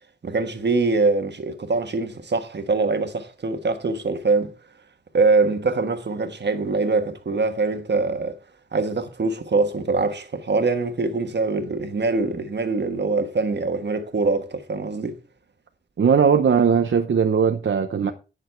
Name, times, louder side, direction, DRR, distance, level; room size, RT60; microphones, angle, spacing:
voice 1, 0.2-4.5 5.1-8.4 8.7-15.2, right 3 dB, 65° right, 1.3 m, -23 dB
voice 2, 16.0-18.1, right 6 dB, 80° right, 0.8 m, -19 dB
10.5 x 6.4 x 4.5 m
wide cardioid pair, 115°, 20 cm